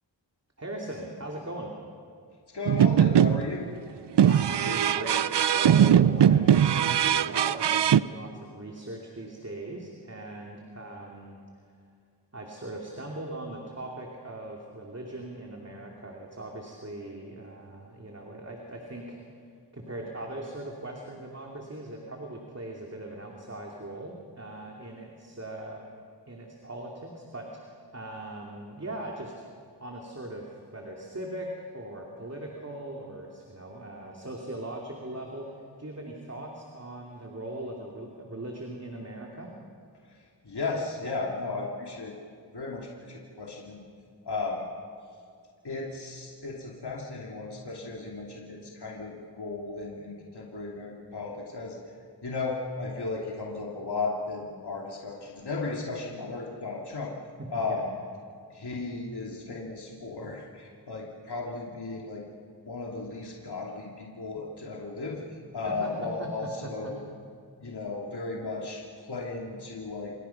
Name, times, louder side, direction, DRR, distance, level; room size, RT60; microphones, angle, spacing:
voice 1, 0.6-1.7 4.3-11.4 12.3-19.2 19.7-25.8 26.3-29.3 29.8-39.5 57.7-57.8 65.6-65.9 66.2-66.9, right 1 dB, 35° right, -1 dB, 3.0 m, -40 dB
voice 2, 2.5-3.7 40.0-42.1 42.5-43.8 44.2-44.7 45.6-52.0 52.2-57.1 57.5-57.9 58.5-62.2 62.7-67.0 67.6-70.1, left 3 dB, 65° left, -2 dB, 2.9 m, -35 dB
sound 1, 2.7-3.6 4.2-8.0, right 9 dB, 70° right, 0.6 m, -21 dB
27.5 x 27.5 x 5.9 m, 2.3 s
wide cardioid pair, 80°, 43 cm